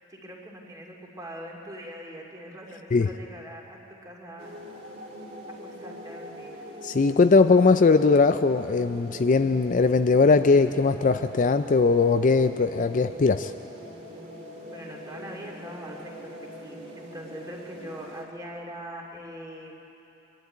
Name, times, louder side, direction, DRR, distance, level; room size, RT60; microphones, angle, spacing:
voice 1, 0.1-4.6 5.6-6.6 14.7-19.8, equal, 15° right, -1 dB, 2.6 m, -42 dB
sound 1, 4.4-18.3, equal, 30° right, 2.4 m, -43 dB
voice 2, 6.8-13.5, left 4 dB, 40° left, 9 dB, 0.4 m, -20 dB
24.5 x 12.0 x 9.5 m, 3.0 s
head